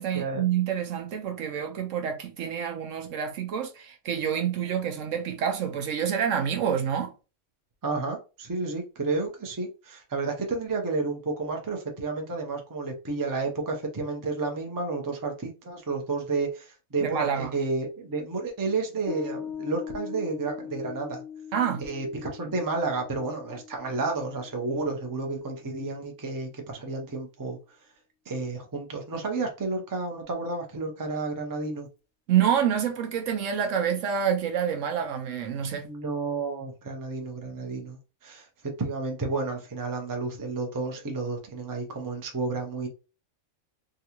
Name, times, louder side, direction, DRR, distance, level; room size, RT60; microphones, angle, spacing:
voice 1, 0.0-7.1 17.0-17.5 21.5-21.9 32.3-35.8, right 8 dB, 70° right, 0.9 m, -27 dB
voice 2, 7.8-21.2 21.8-27.6 28.3-31.9 35.8-38.5 38.8-42.9, right 3 dB, 20° right, 0.5 m, -31 dB
Piano, 19.1-25.8, left 7 dB, 85° left, 1.2 m, -41 dB
3.7 x 2.3 x 2.9 m
omnidirectional pair, 1.5 m